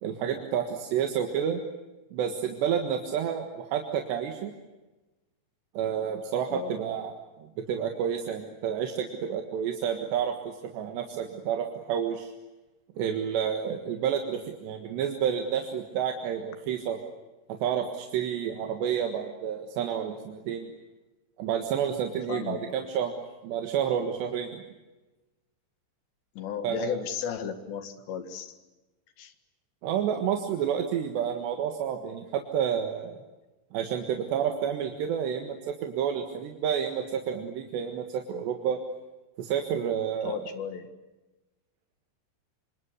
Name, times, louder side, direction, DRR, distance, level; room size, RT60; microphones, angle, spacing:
voice 1, 0.0-1.6 2.1-4.5 5.8-7.1 7.4-12.3 13.0-17.0 17.6-20.7 21.4-23.1 23.4-24.6 26.6-27.0 29.8-33.2 33.7-38.8 39.4-40.4, right 8 dB, 80° right, 4 dB, 3.9 m, -30 dB
voice 2, 22.3-22.7 26.4-28.6 29.2-29.3 40.2-40.9, left 8 dB, 85° left, 10 dB, 4.1 m, -34 dB
26.5 x 26.5 x 8.2 m, 1.1 s
omnidirectional pair, 4.9 m